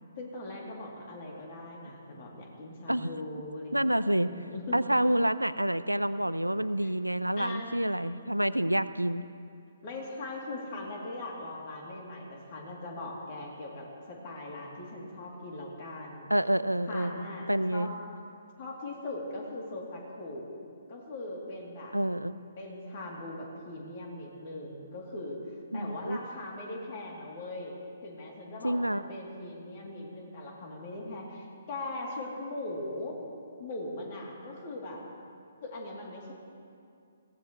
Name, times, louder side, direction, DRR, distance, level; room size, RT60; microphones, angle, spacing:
voice 1, 0.2-3.8 4.1-4.8 6.8-6.9 7.4-7.7 9.8-16.3 16.9-17.9 18.6-20.5 20.9-21.9 22.6-25.4 25.7-27.7 28.0-33.2 33.6-35.0 35.6-36.3, left 2 dB, 40° left, -2 dB, 3.1 m, -40 dB
voice 2, 3.7-4.3 4.7-9.2 16.3-17.9 21.9-22.4 25.7-26.2 28.6-29.0, right 1 dB, 90° right, 14 dB, 0.5 m, -28 dB
21.0 x 16.5 x 3.2 m, 2.4 s
figure-of-eight pair, 130°, 0 cm